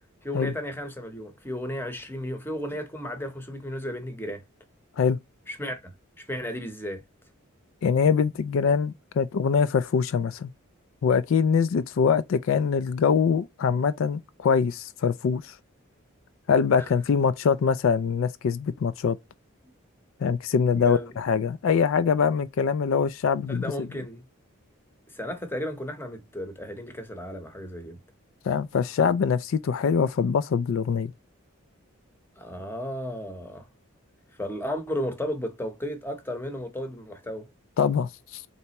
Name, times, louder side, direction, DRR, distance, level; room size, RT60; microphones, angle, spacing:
voice 1, 0.2-4.4 5.5-5.9 6.2-7.0 16.8-16.9 19.6-19.7 20.8-21.2 23.5-24.2 25.1-28.0 32.4-33.7 34.4-37.5, equal, 10° left, 0.8 m, -34 dB
voice 2, 7.8-10.5 11.0-15.6 16.5-19.2 20.2-23.6 28.4-31.1 37.8-38.4, left 6 dB, 70° left, 0.3 m, -23 dB
4.2 x 3.3 x 2.9 m
head